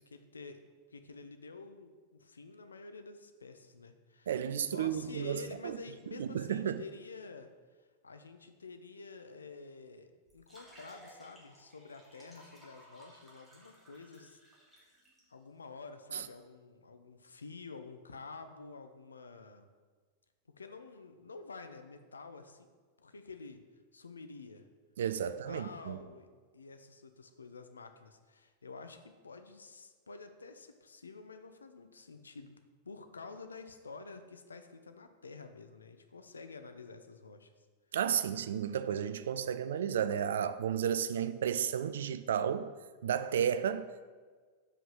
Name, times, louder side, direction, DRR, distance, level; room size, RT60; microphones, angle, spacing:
voice 1, 0.1-0.6 0.9-7.5 7.8-14.4 14.8-14.9 15.3-19.7 20.6-22.7 23.0-23.6 23.9-24.7 25.2-32.6 32.8-37.7, left 4 dB, 75° left, 0.5 m, -49 dB
voice 2, 4.3-5.8 6.2-6.8 16.1-16.3 25.0-26.0 37.9-42.7 43.0-43.9, right 8 dB, 60° right, 0.3 m, -33 dB
sound 1, 10.3-15.2, equal, 5° right, 2.1 m, -58 dB
5.0 x 5.0 x 5.5 m
figure-of-eight pair, 90°, 0 cm